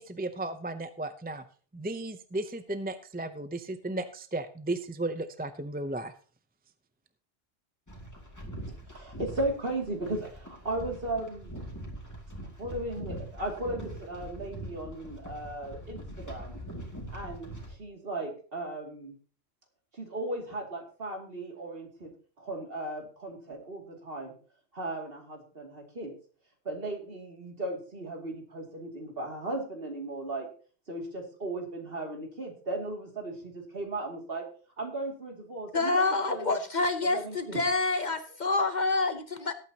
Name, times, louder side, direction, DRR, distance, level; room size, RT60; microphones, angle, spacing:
voice 1, 0.0-1.4 1.7-6.1, right 2 dB, 10° right, 10 dB, 0.5 m, -35 dB
sound 1, 7.9-17.7, right 1 dB, 15° left, 2.5 m, -42 dB
voice 2, 8.7-11.6 12.6-16.6 17.1-19.1 19.9-22.1 22.4-24.3 24.7-26.1 26.6-30.5 30.9-34.5 34.8-36.0 36.3-36.5 37.0-37.6, right 2 dB, 55° right, 2 dB, 2.8 m, -36 dB
voice 3, 35.7-39.5, left 3 dB, 45° left, 9 dB, 0.9 m, -27 dB
18.5 x 8.8 x 2.9 m, 0.40 s
omnidirectional pair, 1.1 m